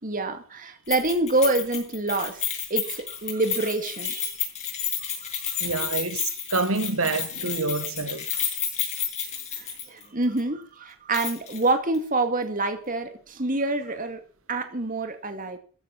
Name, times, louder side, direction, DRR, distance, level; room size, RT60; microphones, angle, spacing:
voice 1, 0.0-2.4 2.7-4.3 5.5-5.7 9.5-14.2 14.5-15.6, right 2 dB, 40° right, 2.3 m, -27 dB
Keys jangling, 0.9-10.1 10.4-10.5 11.1-11.6 11.9-12.0, left 8 dB, 35° left, 7.3 m, -31 dB
voice 2, 5.6-8.3, right 3 dB, 90° right, 1.7 m, -27 dB
15.0 x 12.5 x 6.0 m
head